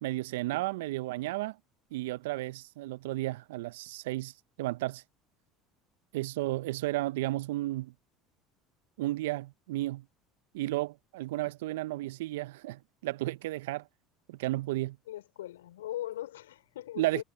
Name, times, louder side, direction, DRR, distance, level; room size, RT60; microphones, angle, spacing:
voice 1, 0.0-1.6 1.9-5.0 6.1-7.9 9.0-10.0 10.5-13.9 14.3-15.0 17.0-17.2, right 18 dB, 75° right, 0.8 m, -33 dB
voice 2, 15.1-17.2, left 13 dB, 80° left, 5.4 m, -40 dB
hypercardioid pair, 70°, 0 cm